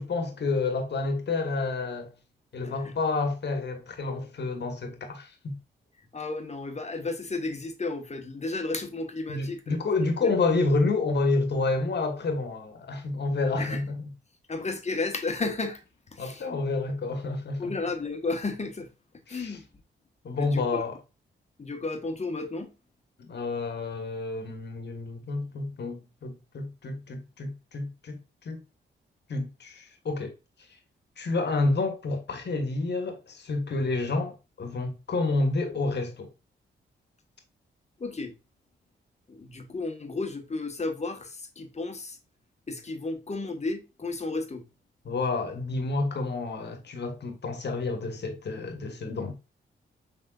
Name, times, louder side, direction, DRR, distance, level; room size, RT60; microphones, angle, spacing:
voice 1, 0.0-2.1 2.5-5.6 9.3-14.1 16.2-17.7 19.3-19.6 20.2-21.0 23.2-28.6 29.3-30.3 31.2-36.3 45.0-49.3, left 3 dB, 60° left, 1.3 m, -29 dB
voice 2, 6.1-9.8 13.6-13.8 14.5-15.8 16.1-16.5 17.6-18.9 19.3-19.6 20.4-20.8 21.6-22.7 38.0-38.3 39.3-42.2 42.7-44.6, left 3 dB, 35° left, 1.2 m, -33 dB
6.1 x 3.6 x 2.4 m
supercardioid pair, 55°, 20 cm